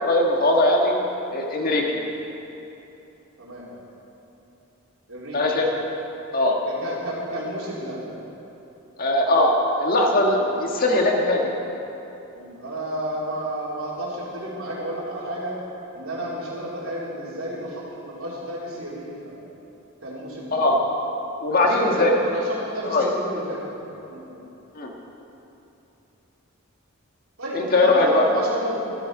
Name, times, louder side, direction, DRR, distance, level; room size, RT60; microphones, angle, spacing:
voice 1, 0.0-0.9 1.3-1.8 5.3-5.7 6.3-6.6 9.0-9.5 9.8-11.4 20.5-20.7 21.4-22.1 22.9-23.1 24.7-24.9 27.5-28.3, left 2 dB, 45° left, 0 dB, 1.6 m, -20 dB
voice 2, 3.4-3.7 5.1-5.4 6.6-8.0 10.4-10.5 12.3-15.5 15.9-19.4 20.0-20.6 21.6-23.7 24.1-24.3 27.4-28.9, right 1 dB, 80° right, -6 dB, 3.5 m, -32 dB
14.0 x 13.0 x 4.8 m, 3.0 s
head